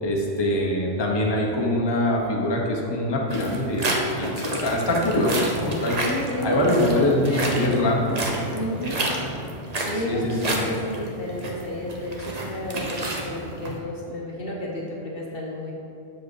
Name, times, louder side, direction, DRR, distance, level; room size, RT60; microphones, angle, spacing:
voice 1, 0.0-6.0 6.4-8.2 10.1-10.6, left 1 dB, 25° left, -2 dB, 0.8 m, -23 dB
sound 1, 3.3-13.8, right 1 dB, 40° right, 0.8 m, -30 dB
voice 2, 6.0-7.7 8.5-9.1 9.8-15.7, left 1 dB, 50° left, -3 dB, 0.9 m, -31 dB
7.1 x 4.7 x 4.8 m, 2.5 s
omnidirectional pair, 1.3 m